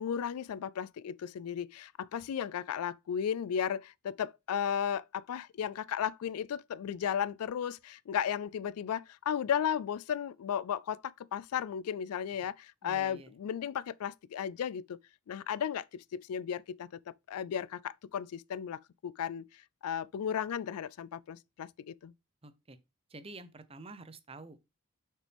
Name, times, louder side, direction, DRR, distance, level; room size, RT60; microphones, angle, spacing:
voice 1, 0.0-15.0 15.3-19.4 19.8-22.1, left 8 dB, 85° left, 0.3 m, -35 dB
voice 2, 12.8-13.3 22.4-22.8 23.1-24.6, right 2 dB, 25° right, 0.6 m, -49 dB
6.5 x 6.1 x 3.4 m
head